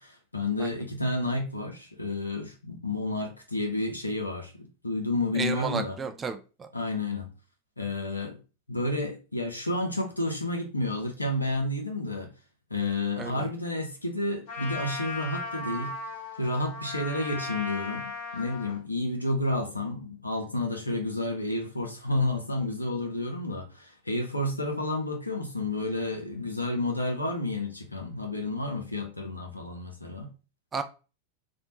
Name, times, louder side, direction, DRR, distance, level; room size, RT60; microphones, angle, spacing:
voice 1, 0.0-6.0 6.7-7.3 7.8-8.4 8.7-12.3 12.7-15.9 16.4-30.3, left 2 dB, 85° left, 0.6 m, -30 dB
voice 2, 5.3-6.7 13.2-13.5 30.7-30.8, right 5 dB, 20° right, 0.3 m, -33 dB
Trumpet, 14.5-18.8, left 3 dB, 55° left, 1.0 m, -37 dB
2.5 x 2.1 x 2.8 m
figure-of-eight pair, 90°, 0 cm